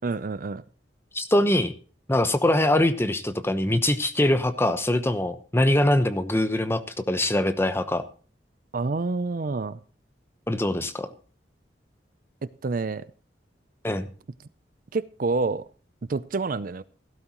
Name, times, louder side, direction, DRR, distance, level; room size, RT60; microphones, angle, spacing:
voice 1, 0.0-0.6 8.7-9.8 12.6-13.0 14.9-15.6 16.1-16.8, right 3 dB, 50° right, 17 dB, 0.5 m, -27 dB
voice 2, 1.1-1.7 2.1-8.0 10.5-11.1 13.8-14.1, left 1 dB, 15° left, 10 dB, 0.9 m, -23 dB
16.0 x 12.5 x 3.0 m, 0.39 s
head